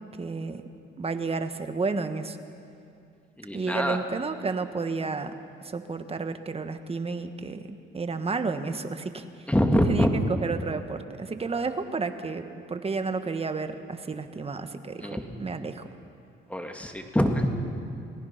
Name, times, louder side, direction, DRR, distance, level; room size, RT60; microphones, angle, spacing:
voice 1, 0.2-0.6 1.0-2.4 3.5-5.3 5.6-9.5 9.9-15.9, right 4 dB, 30° right, 8 dB, 1.4 m, -31 dB
voice 2, 3.4-4.0 9.5-10.1 15.0-15.3 16.5-17.6, equal, 5° left, 4 dB, 2.0 m, -25 dB
28.5 x 19.0 x 5.8 m, 2.5 s
cardioid pair, 90°, 20 cm